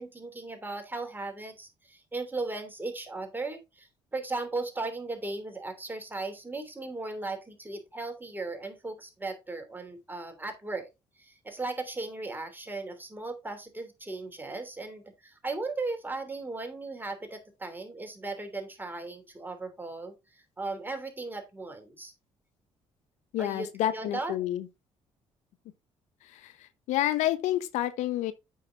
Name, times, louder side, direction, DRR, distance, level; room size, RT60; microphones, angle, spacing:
voice 1, 0.0-10.9 11.2-22.1 23.4-24.4, right 3 dB, 15° right, 3.0 m, -37 dB
voice 2, 23.3-24.7 26.3-28.3, left 13 dB, 80° left, 0.8 m, -29 dB
8.4 x 5.7 x 3.7 m
supercardioid pair, 65°, 12 cm